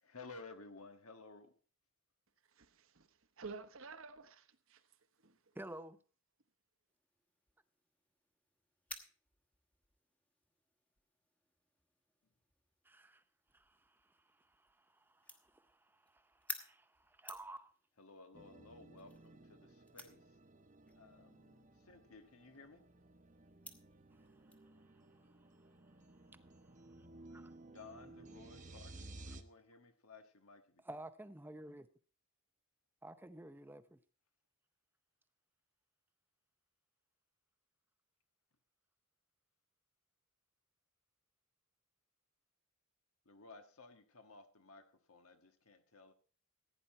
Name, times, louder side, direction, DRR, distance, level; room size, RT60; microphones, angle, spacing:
voice 1, 0.0-1.5 18.0-20.2 20.9-22.9 27.6-30.8 43.2-46.1, left 3 dB, 85° left, 1.5 m, -56 dB
voice 2, 2.6-3.1 3.4-4.8 5.2-5.4, right 4 dB, 70° right, 1.1 m, -51 dB
voice 3, 5.5-6.0 12.9-13.2 13.5-17.7 24.1-24.2 24.7-25.3 27.3-27.5 29.3-29.4 30.8-31.9 33.0-34.0, right 1 dB, 10° right, 0.6 m, -53 dB
sound 1, 6.9-24.6, left 2 dB, 5° left, 1.1 m, -56 dB
sound 2, 18.3-29.4, right 2 dB, 35° right, 0.9 m, -57 dB
15.5 x 9.5 x 4.3 m
head